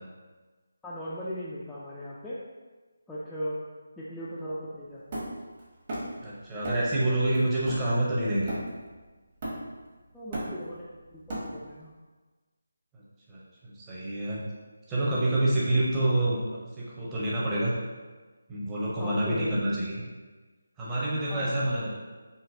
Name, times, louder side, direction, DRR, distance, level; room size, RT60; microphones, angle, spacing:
voice 1, 0.8-2.4 3.1-3.6 4.0-5.2 10.1-10.8 11.1-11.9 19.0-19.8 21.3-21.6, equal, 5° left, -11 dB, 0.3 m, -38 dB
Hammer, 5.1-6.2 6.6-7.0 7.3-8.9 9.4-9.9 10.1-11.8, right 1 dB, 35° right, 1.1 m, -36 dB
voice 2, 6.2-8.5 12.9-14.4 14.9-17.7 18.5-20.0 20.8-21.9, right 1 dB, 15° right, -7 dB, 0.7 m, -27 dB
3.9 x 2.7 x 2.6 m, 1.3 s
figure-of-eight pair, 160°, 0 cm